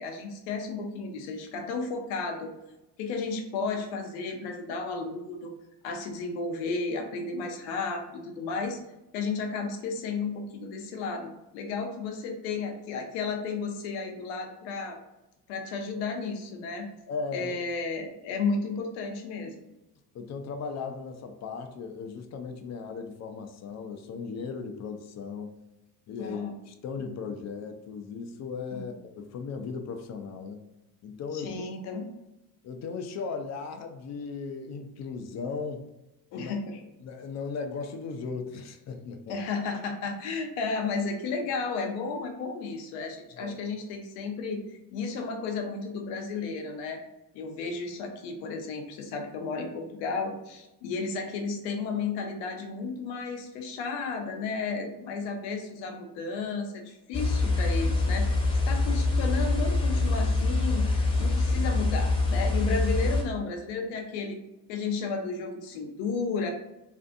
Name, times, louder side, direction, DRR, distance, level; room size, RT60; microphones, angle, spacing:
voice 1, 0.0-2.5 3.0-5.5 5.8-8.8 9.1-15.0 15.5-16.9 17.3-19.6 26.2-26.6 28.7-28.8 31.3-32.1 36.3-36.8 39.3-44.6 44.9-47.0 47.3-58.4 58.7-64.4 64.7-66.5, left 4 dB, 75° left, 4 dB, 0.7 m, -33 dB
voice 2, 17.1-17.6 20.1-25.5 26.1-30.6 31.0-31.5 32.6-35.9 36.3-36.5 37.0-39.4 43.3-43.6, left 5 dB, 40° left, 6 dB, 0.4 m, -37 dB
sound 1, 57.1-63.2, left 3 dB, 10° left, 0.7 m, -25 dB
2.6 x 2.5 x 2.4 m, 0.95 s
supercardioid pair, 75°, 46 cm